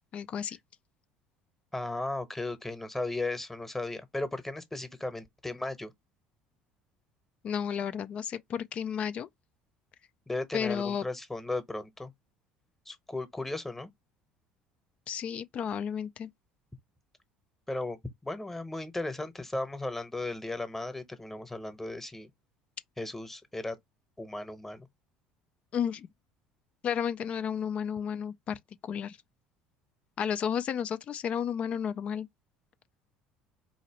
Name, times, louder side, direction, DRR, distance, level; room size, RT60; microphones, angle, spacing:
voice 1, 0.1-0.6 7.4-9.3 10.5-11.0 15.1-16.3 25.7-26.1 26.8-29.2 30.2-32.3, left 8 dB, 45° left, 0.4 m, -32 dB
voice 2, 1.7-5.9 10.3-12.1 12.9-13.9 17.7-22.3 23.0-23.8 24.2-24.9, left 2 dB, 10° left, 1.0 m, -36 dB
4.1 x 2.8 x 2.8 m
supercardioid pair, 80°, 3 cm